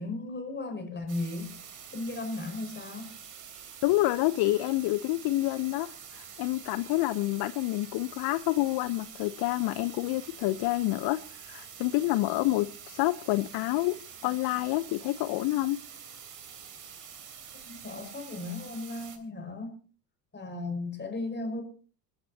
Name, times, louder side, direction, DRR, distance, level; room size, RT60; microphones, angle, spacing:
voice 1, 0.0-1.5 1.9-3.1 17.5-19.7 20.3-21.6, left 2 dB, 20° left, 6 dB, 5.5 m, -36 dB
sound 1, 1.1-19.2, right 8 dB, 40° right, 3.6 m, -47 dB
voice 2, 3.8-5.9 6.1-13.9 14.2-15.8, left 18 dB, 50° left, 15 dB, 0.8 m, -28 dB
27.5 x 13.5 x 2.8 m, 0.40 s
hypercardioid pair, 75°, 47 cm